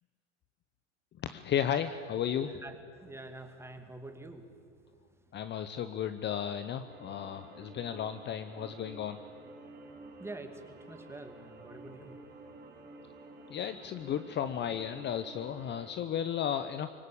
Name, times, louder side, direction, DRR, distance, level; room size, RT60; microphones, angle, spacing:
voice 1, 1.2-2.5 5.3-9.2 13.5-16.9, left 9 dB, 30° left, 11 dB, 0.9 m, -34 dB
voice 2, 2.5-4.5 9.7-9.8 10.2-12.2, right 2 dB, 5° right, 6 dB, 2.4 m, -46 dB
sound 1, 6.9-15.9, right 2 dB, 30° right, 4.4 m, -51 dB
23.5 x 18.5 x 8.7 m, 2.2 s
hypercardioid pair, 105°, 36 cm